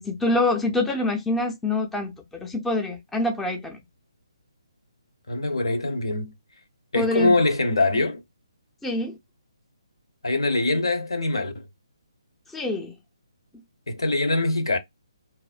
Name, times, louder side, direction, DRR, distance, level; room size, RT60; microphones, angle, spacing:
voice 1, 0.0-3.8 6.9-7.4 8.8-9.1 12.5-12.9, left 2 dB, 5° left, 0.4 m, -25 dB
voice 2, 5.3-6.3 6.9-8.2 10.2-11.7 13.9-14.8, left 2 dB, 65° left, 0.7 m, -23 dB
2.5 x 2.0 x 2.5 m
figure-of-eight pair, 140°, 3 cm